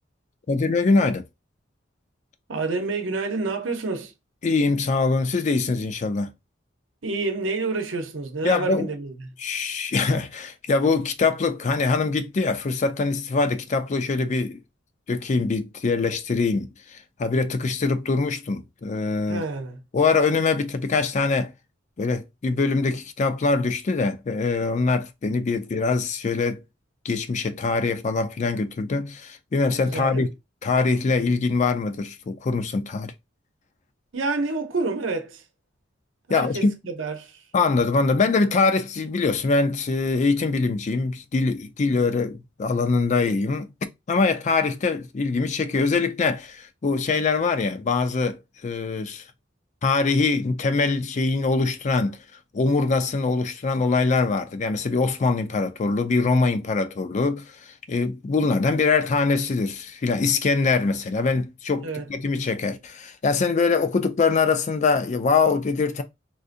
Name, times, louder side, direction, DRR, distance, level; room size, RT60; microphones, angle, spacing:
voice 1, 0.5-1.2 4.4-6.3 8.4-8.9 9.4-14.6 15.1-19.4 19.9-21.5 22.0-26.6 27.0-30.3 30.6-33.1 36.3-36.7 37.5-43.7 44.1-49.2 49.8-52.2 52.5-57.5 57.9-66.0, left 4 dB, 40° left, 0.4 m, -23 dB
voice 2, 2.5-4.1 7.0-9.3 19.3-19.8 29.8-30.3 34.1-35.4 36.3-37.4 61.8-62.1, right 3 dB, 85° right, 0.8 m, -28 dB
3.7 x 2.6 x 2.5 m
head